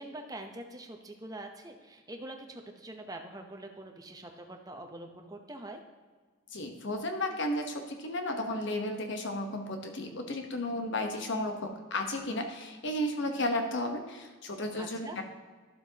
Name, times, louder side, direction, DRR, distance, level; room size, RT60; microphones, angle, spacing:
voice 1, 0.0-5.8 14.8-15.2, right 1 dB, 20° right, 4 dB, 0.8 m, -44 dB
voice 2, 6.5-15.2, left 1 dB, 60° left, 5 dB, 1.1 m, -33 dB
12.0 x 7.4 x 2.9 m, 1.4 s
head